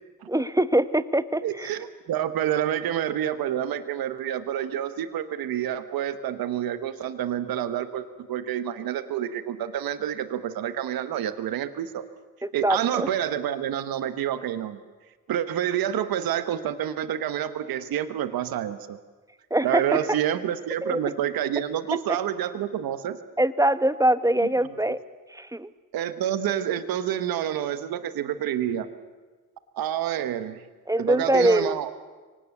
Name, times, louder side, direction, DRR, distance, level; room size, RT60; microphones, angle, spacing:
voice 1, 0.3-1.7 12.4-13.1 19.5-20.0 20.8-21.0 23.4-25.0 25.3-25.7 30.9-31.9, right 1 dB, 10° right, 13 dB, 1.2 m, -23 dB
voice 2, 1.4-12.0 12.5-14.8 15.3-19.0 19.6-23.2 24.4-25.0 25.9-28.9 29.8-30.6 31.0-31.9, right 10 dB, 90° right, 12 dB, 1.1 m, -28 dB
24.0 x 18.5 x 8.3 m, 1.3 s
supercardioid pair, 40°, 35 cm